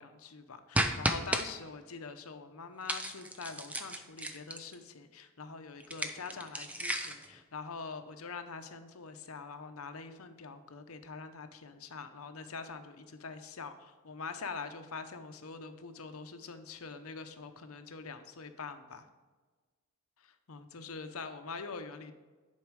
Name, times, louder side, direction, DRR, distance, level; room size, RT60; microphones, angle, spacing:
voice 1, 0.0-19.1 20.2-22.1, left 4 dB, 85° left, 8 dB, 0.8 m, -44 dB
sound 1, 0.7-1.4 2.9-4.7 5.8-7.3, right 1 dB, 5° right, 0.5 m, -33 dB
10.5 x 4.6 x 4.7 m, 1.4 s
head